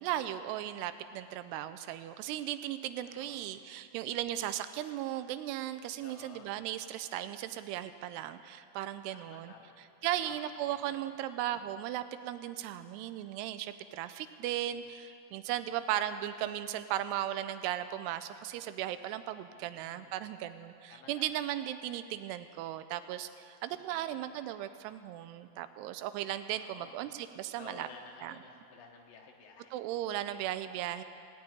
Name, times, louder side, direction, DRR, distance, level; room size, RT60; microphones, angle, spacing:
voice 1, 0.0-9.5 10.0-27.9 28.2-28.3 29.7-31.0, right 12 dB, 85° right, 12 dB, 2.6 m, -36 dB
voice 2, 3.0-3.5 6.0-6.6 9.1-10.4 10.7-11.0 14.5-14.8 19.5-20.2 20.9-21.4 23.7-24.3 26.5-27.1 27.6-29.8 30.3-30.5, left 5 dB, 65° left, 1 dB, 2.8 m, -54 dB
17.5 x 6.9 x 9.6 m, 2.5 s
omnidirectional pair, 4.8 m